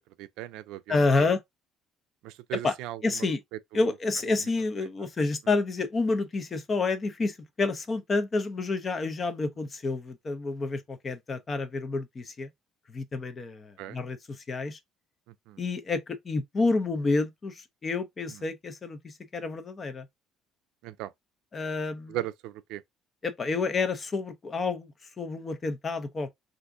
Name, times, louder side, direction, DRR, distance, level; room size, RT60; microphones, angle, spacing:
voice 1, 0.2-1.4 2.2-3.3 3.7-3.9 4.8-4.9 13.8-14.0 15.3-15.6 18.3-18.4 20.8-21.1 22.1-22.8, right 14 dB, 90° right, 0.4 m, -38 dB
voice 2, 0.9-1.4 2.6-2.7 3.0-3.4 3.7-12.5 12.9-14.8 15.6-20.1 21.5-22.2 23.2-26.3, left 3 dB, 25° left, 0.5 m, -29 dB
3.5 x 2.5 x 2.5 m
cardioid pair, 150°, 0 cm